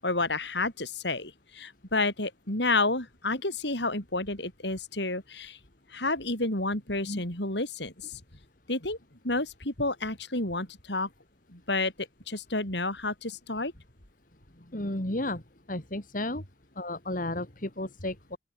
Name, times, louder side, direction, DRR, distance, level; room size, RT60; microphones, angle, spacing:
voice 1, 0.0-5.6 5.9-8.2 8.7-9.0 9.2-11.1 11.5-13.7, left 2 dB, 65° left, 7.5 m, -30 dB
voice 2, 14.7-15.4 15.7-16.4 16.8-18.4, left 1 dB, 45° left, 2.9 m, -33 dB
open air
head